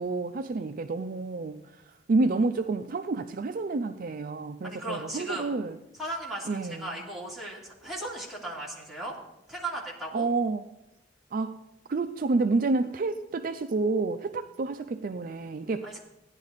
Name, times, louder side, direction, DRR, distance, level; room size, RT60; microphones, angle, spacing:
voice 1, 0.0-1.6 2.1-5.8 6.5-6.9 10.1-10.7 11.3-11.6 11.9-16.0, right 3 dB, 45° right, 8 dB, 0.4 m, -29 dB
voice 2, 4.6-5.5 5.9-9.2 9.5-10.3 15.8-16.0, right 1 dB, ahead, -6 dB, 2.8 m, -37 dB
15.5 x 10.5 x 4.0 m, 0.91 s
head